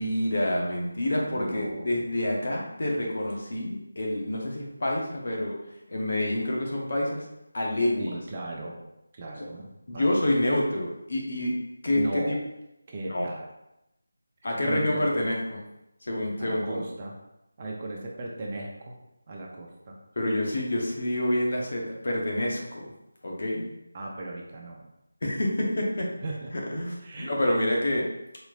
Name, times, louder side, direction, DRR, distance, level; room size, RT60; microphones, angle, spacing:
voice 1, 0.0-5.5 5.9-7.2 7.5-8.1 9.9-11.5 11.8-12.0 12.3-12.4 13.0-13.3 14.4-15.6 16.0-16.8 20.2-22.8 23.2-23.7 25.2-26.1 26.5-28.1, left 1 dB, 55° left, -2 dB, 1.0 m, -27 dB
voice 2, 1.3-2.1 8.0-8.8 9.1-10.3 11.9-12.4 12.9-13.5 14.6-15.0 16.4-17.1 17.6-19.0 19.3-19.9 23.9-24.8 26.2-26.5 27.0-27.6, right 2 dB, 30° right, -1 dB, 0.6 m, -37 dB
4.1 x 2.9 x 2.4 m, 0.88 s
figure-of-eight pair, 165°, 0 cm